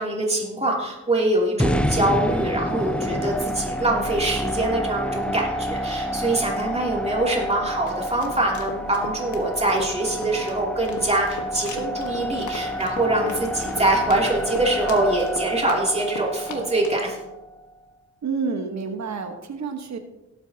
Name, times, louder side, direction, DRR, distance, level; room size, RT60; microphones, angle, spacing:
voice 1, 0.0-17.2, right 2 dB, 20° right, -2 dB, 2.9 m, -24 dB
sound 1, 1.6-17.7, equal, 5° left, 0.6 m, -29 dB
sound 2, 7.6-17.0, left 3 dB, 90° left, 1.5 m, -37 dB
voice 2, 18.2-20.0, right 5 dB, 70° right, 6 dB, 1.3 m, -29 dB
18.0 x 8.2 x 2.8 m, 1.0 s
wide cardioid pair, 105°, 29 cm